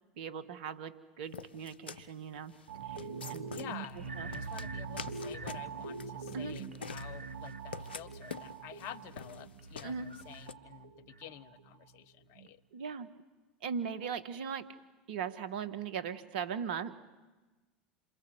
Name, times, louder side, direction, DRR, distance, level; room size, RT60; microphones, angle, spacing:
voice 1, 0.2-2.5 2.8-3.5 4.2-4.3 6.3-6.6 9.8-10.1 12.7-13.1 13.6-14.7 15.1-16.9, right 7 dB, 70° right, 12 dB, 1.8 m, -39 dB
sound 1, 1.3-10.5, left 6 dB, 90° left, 1.0 m, -47 dB
sound 2, 2.7-12.0 12.4-12.5, right 5 dB, 90° right, 1.3 m, -43 dB
voice 2, 3.5-12.6, left 11 dB, 55° left, 16 dB, 1.3 m, -49 dB
28.0 x 25.0 x 8.2 m, 1.2 s
hypercardioid pair, 85°, 5 cm